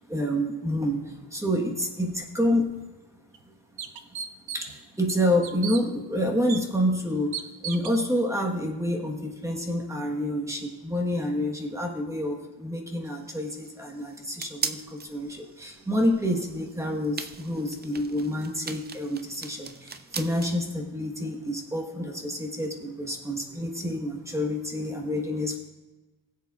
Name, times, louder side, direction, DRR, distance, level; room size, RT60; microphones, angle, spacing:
voice 1, 0.1-2.8 4.5-25.6, equal, 5° right, 1 dB, 1.2 m, -28 dB
sound 1, 2.7-2.8 3.3-3.4 3.8-4.8 5.1-5.8 6.5-6.6 7.3-8.0, right 8 dB, 75° right, 0.8 m, -35 dB
sound 2, 13.1-20.6, right 5 dB, 25° right, 0.3 m, -40 dB
21.5 x 7.7 x 2.4 m, 1.2 s
wide cardioid pair, 165°, 46 cm